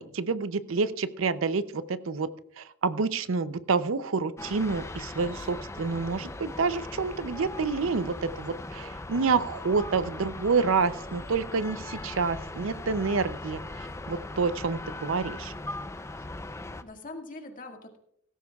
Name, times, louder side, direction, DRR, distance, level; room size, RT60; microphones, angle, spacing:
voice 1, 0.0-2.3 2.6-13.6 14.1-15.5, right 4 dB, 70° right, 13 dB, 0.6 m, -28 dB
sound 1, 4.4-16.8, left 2 dB, 15° left, 0.5 m, -39 dB
voice 2, 8.5-8.9 11.9-12.2 16.6-18.0, left 2 dB, 40° left, 3 dB, 1.9 m, -44 dB
17.0 x 14.5 x 2.4 m, 0.74 s
head